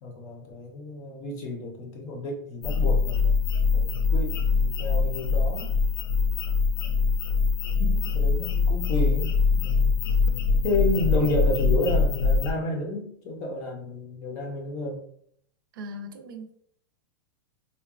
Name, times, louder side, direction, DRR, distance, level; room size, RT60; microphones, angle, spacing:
voice 1, 0.0-3.4 3.7-5.7 7.8-9.9 10.6-15.0, left 2 dB, 25° left, 1 dB, 0.6 m, -31 dB
sound 1, 2.6-12.5, left 4 dB, 75° left, 0.5 m, -23 dB
voice 2, 7.8-8.1 11.2-11.3 15.7-16.5, equal, 65° right, 6 dB, 0.5 m, -40 dB
3.7 x 2.2 x 2.3 m, 0.66 s
supercardioid pair, 180°, 12 cm